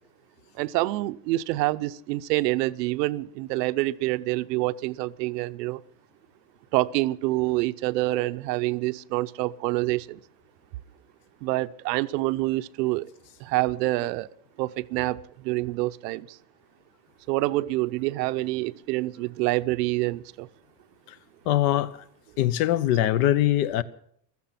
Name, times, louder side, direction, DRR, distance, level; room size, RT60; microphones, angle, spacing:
voice 1, 0.6-5.8 6.7-10.2 11.4-13.1 13.4-14.3 14.6-16.4 17.3-20.5, right 19 dB, 80° right, 0.8 m, -27 dB
voice 2, 21.5-21.9 22.4-23.8, left 13 dB, 65° left, 1.0 m, -22 dB
15.5 x 14.0 x 5.8 m
cardioid pair, 160°, 49 cm